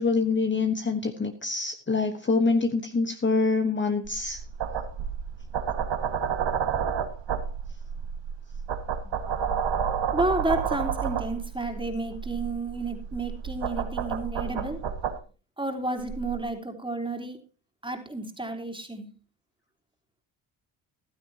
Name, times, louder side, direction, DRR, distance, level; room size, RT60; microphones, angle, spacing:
voice 1, 0.0-4.4, left 4 dB, 25° left, 6 dB, 1.3 m, -25 dB
sound 1, 4.0-15.2 16.0-16.4, right 7 dB, 60° right, 1.9 m, -31 dB
voice 2, 10.1-14.8 15.6-17.4 17.8-19.1, right 2 dB, 10° right, 5 dB, 3.2 m, -31 dB
15.0 x 12.0 x 2.9 m, 0.35 s
supercardioid pair, 70°, 48 cm